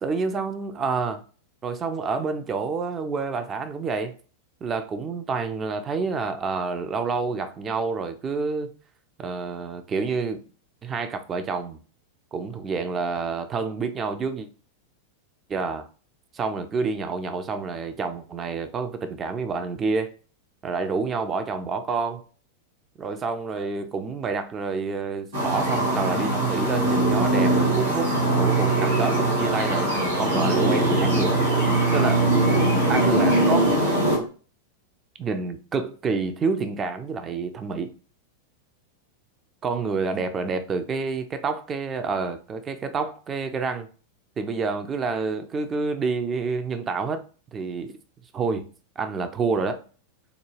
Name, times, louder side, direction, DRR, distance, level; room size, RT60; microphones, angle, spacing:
voice 1, 0.0-1.2 1.6-4.1 4.6-8.7 9.2-10.4 10.8-11.8 12.3-14.5 15.5-15.9 16.3-20.1 20.6-22.2 23.0-31.4 31.9-32.2 32.9-33.9 35.2-37.9 39.6-43.9 44.4-47.2 47.5-48.0 48.3-48.7 49.0-49.8, right 4 dB, 25° right, 0.4 m, -28 dB
sound 1, 25.3-34.2, right 2 dB, 70° right, 1.7 m, -21 dB
3.8 x 2.2 x 3.1 m
figure-of-eight pair, 90°, 0 cm